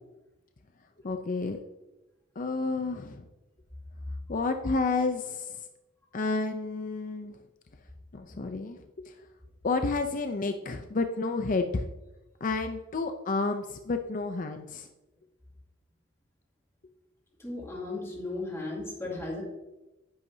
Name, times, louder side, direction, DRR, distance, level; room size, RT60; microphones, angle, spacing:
voice 1, 1.0-1.6 2.4-3.3 4.3-5.5 6.1-7.3 8.1-9.1 9.6-11.9 12.4-14.9, left 3 dB, 40° left, 6 dB, 0.5 m, -30 dB
voice 2, 17.4-19.4, left 2 dB, 15° left, -4 dB, 2.7 m, -35 dB
10.5 x 10.5 x 2.7 m, 1.0 s
head